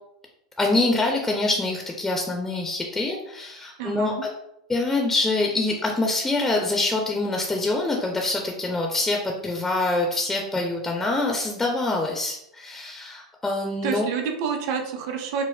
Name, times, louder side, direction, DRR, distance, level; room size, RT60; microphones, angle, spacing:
voice 1, 0.6-4.1 4.7-14.1, left 2 dB, 10° left, 1 dB, 0.4 m, -25 dB
voice 2, 3.8-4.2 13.8-15.4, right 6 dB, 45° right, 5 dB, 0.5 m, -28 dB
4.6 x 2.0 x 2.2 m, 0.77 s
figure-of-eight pair, 90°, 3 cm